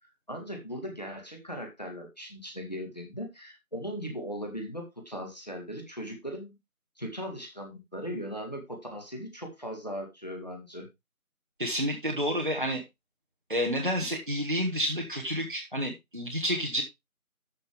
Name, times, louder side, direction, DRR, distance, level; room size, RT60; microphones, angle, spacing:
voice 1, 0.3-6.6 7.0-10.9, equal, 30° left, 2 dB, 2.1 m, -38 dB
voice 2, 11.6-12.8 13.5-16.8, equal, 35° right, 1 dB, 1.3 m, -29 dB
13.0 x 5.3 x 3.5 m, 0.22 s
figure-of-eight pair, 175°, 43 cm